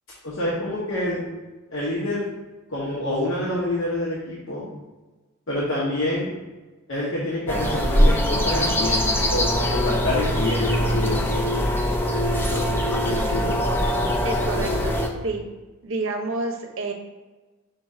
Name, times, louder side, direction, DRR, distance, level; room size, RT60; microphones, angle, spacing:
voice 1, 0.2-1.2 1.7-2.3 2.7-4.7 5.5-6.3 6.9-11.2 12.5-12.8 13.0-13.7, left 1 dB, 60° left, -6 dB, 0.9 m, -27 dB
sound 1, 7.5-15.1, equal, 10° left, 0.4 m, -22 dB
voice 2, 14.2-15.4 15.8-16.9, right 3 dB, 65° right, 2 dB, 0.7 m, -29 dB
5.0 x 2.4 x 4.2 m, 1.2 s
head